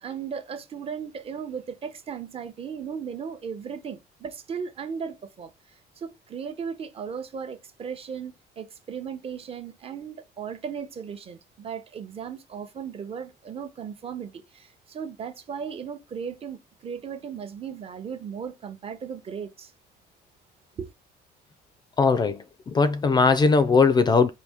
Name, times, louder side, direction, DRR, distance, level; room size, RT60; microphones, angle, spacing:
voice 1, 0.0-5.5 6.0-19.7 20.8-20.9, right 7 dB, 35° right, 0.7 m, -36 dB
voice 2, 22.0-24.3, left 4 dB, 25° left, 0.4 m, -20 dB
4.1 x 2.7 x 3.4 m
cardioid pair, 125°, 17 cm